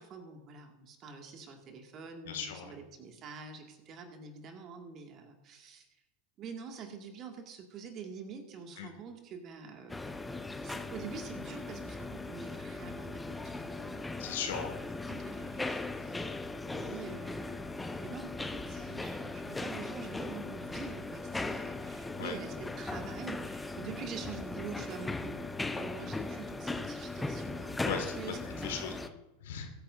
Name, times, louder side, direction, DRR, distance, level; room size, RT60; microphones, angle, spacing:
voice 1, 0.0-5.9 6.4-10.3 10.6-14.0 15.1-16.2 16.6-29.0, right 5 dB, 35° right, 4 dB, 2.0 m, -46 dB
voice 2, 2.3-2.7 8.8-8.9 14.2-14.8 22.2-22.4 27.8-29.7, left 7 dB, 60° left, 4 dB, 1.9 m, -38 dB
sound 1, 9.9-29.1, left 3 dB, 10° left, 0.7 m, -38 dB
21.5 x 9.1 x 2.6 m, 1.0 s
figure-of-eight pair, 85°, 0 cm